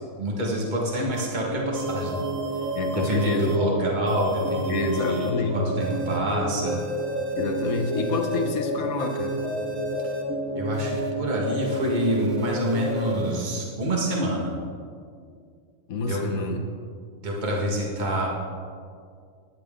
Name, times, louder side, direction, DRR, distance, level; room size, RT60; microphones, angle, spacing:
voice 1, 0.2-2.2 2.9-6.7 10.6-14.5 16.0-16.2 17.2-18.3, right 1 dB, 35° right, -2 dB, 1.9 m, -27 dB
sound 1, 1.1-1.3 1.8-3.6 4.1-5.3 5.8-6.2 6.7-8.5 9.0-10.2 10.7-11.1 11.6-13.4, right 2 dB, 70° right, 1.5 m, -38 dB
sound 2, 1.5-13.2, equal, 15° right, 3.7 m, -30 dB
voice 2, 2.7-3.6 4.7-5.6 7.3-9.4 15.9-16.6, left 3 dB, 90° left, 3 dB, 1.6 m, -28 dB
18.0 x 11.0 x 3.8 m, 2.2 s
omnidirectional pair, 1.4 m